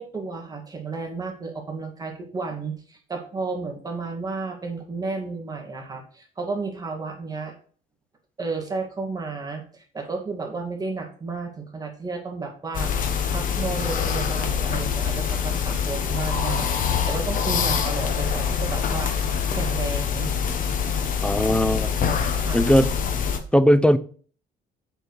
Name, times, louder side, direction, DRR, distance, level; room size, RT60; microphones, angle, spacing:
voice 1, 0.0-7.5 8.4-20.4 22.3-22.6, right 4 dB, 20° right, 2.1 m, -32 dB
sound 1, 12.7-23.4, left 7 dB, 50° left, 1.1 m, -25 dB
voice 2, 21.2-22.2 22.5-22.9 23.5-24.0, equal, 5° left, 0.5 m, -19 dB
7.8 x 4.5 x 4.8 m
cardioid pair, 110°, 17 cm